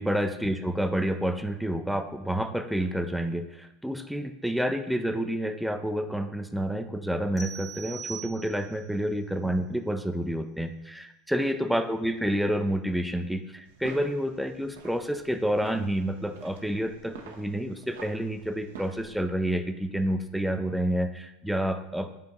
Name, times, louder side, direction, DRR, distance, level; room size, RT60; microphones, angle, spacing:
voice 1, 0.0-22.1, equal, ahead, 8 dB, 0.6 m, -29 dB
sound 1, 7.4-8.9, right 6 dB, 25° left, 1.6 m, -41 dB
sound 2, 13.6-19.2, right 5 dB, 75° right, 0.8 m, -48 dB
5.7 x 3.6 x 5.3 m, 0.89 s
hypercardioid pair, 80°, 0 cm